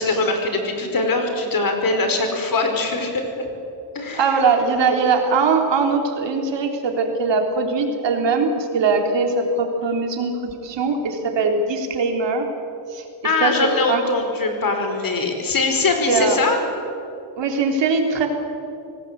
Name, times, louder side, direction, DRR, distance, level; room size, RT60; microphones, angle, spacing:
voice 1, 0.0-3.2 3.9-4.2 13.2-16.6, left 3 dB, 45° left, 5 dB, 5.1 m, -22 dB
voice 2, 4.1-12.5 12.9-13.1 13.4-14.0 16.1-16.4 17.4-18.3, right 4 dB, 65° right, 4 dB, 3.5 m, -21 dB
24.5 x 19.0 x 8.2 m, 2.6 s
cardioid pair, 85°, 46 cm